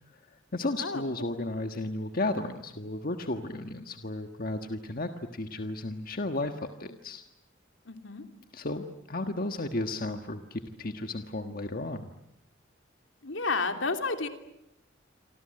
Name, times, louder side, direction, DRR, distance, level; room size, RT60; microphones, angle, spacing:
voice 1, 0.5-7.2 8.5-12.1, left 2 dB, 45° left, 7 dB, 1.4 m, -34 dB
voice 2, 7.9-8.3 13.2-14.3, left 3 dB, 70° left, 6 dB, 3.0 m, -31 dB
28.0 x 25.0 x 7.8 m, 0.82 s
head